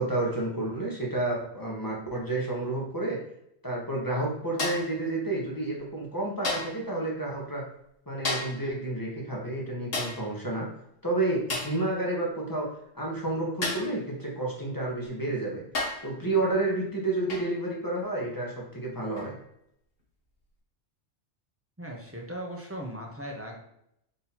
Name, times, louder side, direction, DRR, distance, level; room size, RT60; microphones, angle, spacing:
voice 1, 0.0-3.2 3.6-7.7 8.1-10.7 11.0-12.7 12.9-15.6 16.0-19.3, right 2 dB, 20° left, -4 dB, 0.9 m, -30 dB
sound 1, 4.6-5.0 6.4-6.8 8.2-8.7 9.9-10.3 11.5-11.8 13.6-14.0 15.0-15.1 15.7-16.1 17.3-17.6 19.2-19.4, left 2 dB, 55° left, 1.3 m, -32 dB
voice 2, 21.8-23.6, equal, 15° right, -1 dB, 0.6 m, -38 dB
4.0 x 2.8 x 4.0 m, 0.76 s
omnidirectional pair, 1.2 m